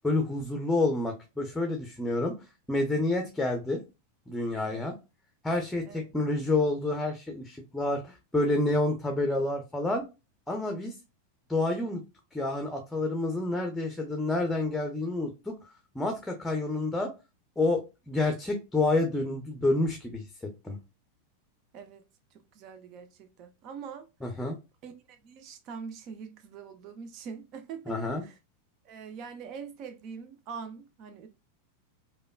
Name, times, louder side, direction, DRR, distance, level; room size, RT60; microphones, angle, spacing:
voice 1, 0.0-2.3 2.7-3.8 4.3-4.9 5.4-10.0 10.5-10.9 11.5-12.0 12.3-15.7 15.9-17.1 17.6-17.8 18.1-20.2 20.6-20.8 24.2-24.5 27.9-28.2, left 2 dB, 5° left, 0.7 m, -28 dB
voice 2, 21.7-22.0 22.3-24.1 24.8-28.0 28.2-28.4 28.8-31.3, right 6 dB, 40° right, 0.5 m, -43 dB
5.0 x 2.2 x 2.2 m
figure-of-eight pair, 90°, 0 cm